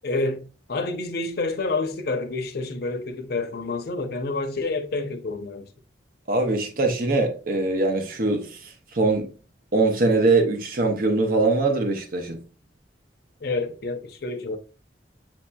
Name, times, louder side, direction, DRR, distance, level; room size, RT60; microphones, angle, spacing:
voice 1, 0.0-5.7 13.4-14.6, left 3 dB, 65° left, 0.7 m, -28 dB
voice 2, 6.3-9.3 9.7-12.4, right 3 dB, 55° right, 0.8 m, -22 dB
7.3 x 2.8 x 2.3 m
head